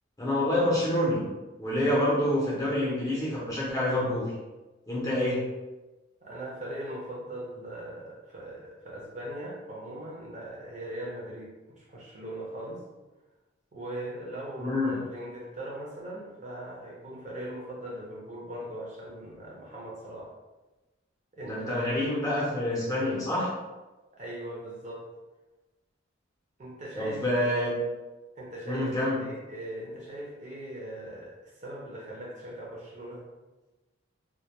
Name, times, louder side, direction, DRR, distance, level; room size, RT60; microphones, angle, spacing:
voice 1, 0.2-1.3 1.6-4.3 4.9-5.4 14.6-15.0 21.4-23.5 27.0-27.8 28.7-29.2, left 1 dB, 15° left, -7 dB, 0.6 m, -27 dB
voice 2, 6.2-12.8 13.7-20.3 21.3-22.0 24.1-25.1 26.6-27.7 28.4-33.2, right 1 dB, 35° right, -4 dB, 0.5 m, -40 dB
2.2 x 2.2 x 2.8 m, 1.1 s
head